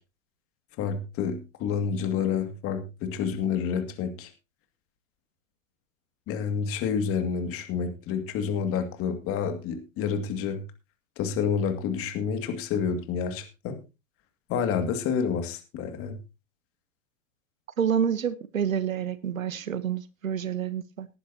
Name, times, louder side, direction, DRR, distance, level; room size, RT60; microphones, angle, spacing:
voice 1, 0.8-4.3 6.3-10.6 11.2-13.8 14.5-16.2, left 6 dB, 35° left, 7 dB, 2.3 m, -29 dB
voice 2, 17.8-21.1, right 8 dB, 90° right, 14 dB, 1.2 m, -28 dB
19.0 x 10.0 x 2.9 m, 0.27 s
hypercardioid pair, 115°, 39 cm